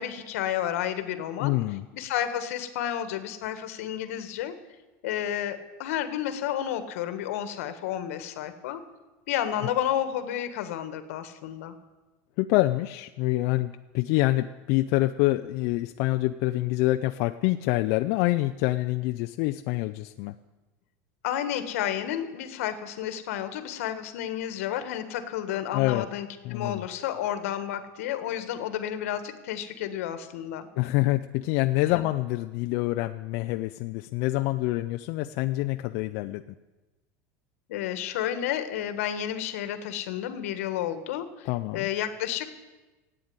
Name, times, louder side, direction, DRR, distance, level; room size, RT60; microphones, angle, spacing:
voice 1, 0.0-1.6 1.9-4.6 5.0-8.8 9.3-11.7 21.2-30.7 31.9-32.0 37.7-41.5 41.7-42.5, left 10 dB, 75° left, 10 dB, 1.5 m, -31 dB
voice 2, 1.4-1.8 12.4-20.3 25.7-26.0 26.4-26.9 30.8-36.4 41.5-41.9, left 18 dB, 45° left, 8 dB, 0.4 m, -26 dB
14.5 x 9.0 x 9.5 m, 1.2 s
supercardioid pair, 175°, 8 cm